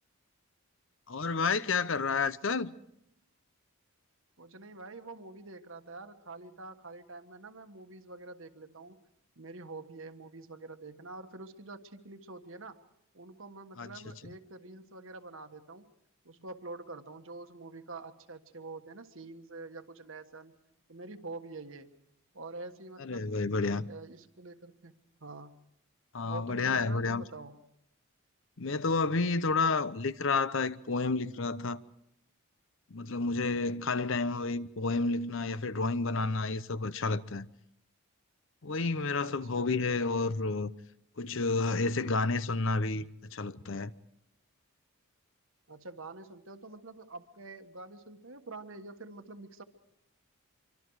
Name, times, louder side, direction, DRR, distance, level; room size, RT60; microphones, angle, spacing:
voice 1, 1.1-2.7 13.8-13.9 23.0-23.9 26.1-27.2 28.6-31.8 32.9-37.5 38.6-40.7 41.2-43.9, left 3 dB, 60° left, 0.7 m, -30 dB
voice 2, 4.4-9.0 9.4-12.8 13.1-15.9 16.2-20.5 20.9-21.9 22.3-23.3 23.8-24.9 25.2-25.5 26.2-27.6 39.2-39.7 45.7-49.6, right 3 dB, 60° right, 1.4 m, -46 dB
26.0 x 24.5 x 4.8 m
head